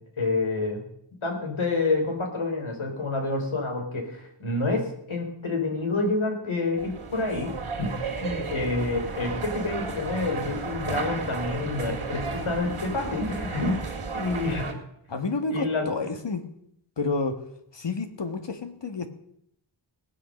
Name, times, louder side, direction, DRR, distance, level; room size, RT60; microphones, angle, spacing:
voice 1, 0.2-0.8 1.2-14.7 15.5-15.9, left 3 dB, 75° left, 3.7 m, -28 dB
sound 1, 6.8-14.7, right 4 dB, 85° right, 2.7 m, -33 dB
voice 2, 15.1-16.5 17.0-17.4 17.7-19.1, left 3 dB, 60° left, 1.8 m, -29 dB
19.0 x 8.4 x 6.5 m
wide cardioid pair, 60°, 49 cm